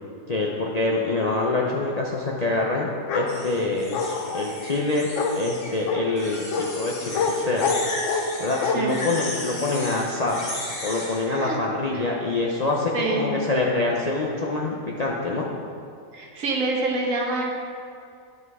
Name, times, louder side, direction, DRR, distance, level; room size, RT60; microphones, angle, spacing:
voice 1, 0.3-4.0 4.3-5.1 5.4-7.7 8.4-10.4 10.8-15.5, left 2 dB, 45° left, -3 dB, 0.5 m, -25 dB
Bark, 3.1-3.3 3.9-4.5 5.2-5.4 5.9-6.0 6.5-6.7 7.1-7.3 7.6-8.3 8.6-8.8, left 5 dB, 65° left, 1.0 m, -25 dB
sound 1, 3.3-5.8 6.2-11.3, left 2 dB, 80° left, 2.0 m, -35 dB
voice 2, 11.3-11.6 11.9-12.0 12.9-13.3 16.1-17.5, right 3 dB, 65° right, 0 dB, 1.4 m, -26 dB
10.0 x 5.4 x 4.7 m, 2.4 s
omnidirectional pair, 1.5 m